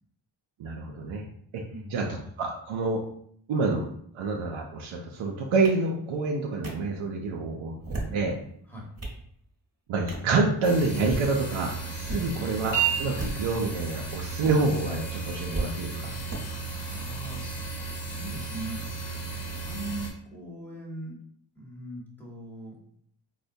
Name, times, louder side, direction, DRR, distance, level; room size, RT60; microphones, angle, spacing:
voice 1, 0.6-1.2 1.5-1.6 1.9-2.1 2.4-3.0 3.5-3.9 4.1-8.4 9.9-16.1, right 3 dB, 70° right, -1 dB, 0.6 m, -27 dB
voice 2, 1.7-2.2 8.7-8.9 12.2-12.8 16.6-21.2 21.5-22.8, right 2 dB, 5° left, -3 dB, 1.1 m, -41 dB
sound 1, 5.6-5.7 6.6-6.7 7.7-8.2 8.7-9.2 10.1-10.3 10.9-11.3 12.0-12.2 13.1-13.6 14.4-14.5 15.5-15.7 16.3-16.4, right 2 dB, 30° right, 1.1 m, -34 dB
sound 2, 10.6-20.1, right 5 dB, 45° left, 1.0 m, -33 dB
4.1 x 2.1 x 2.6 m, 0.65 s
cardioid pair, 70°, 49 cm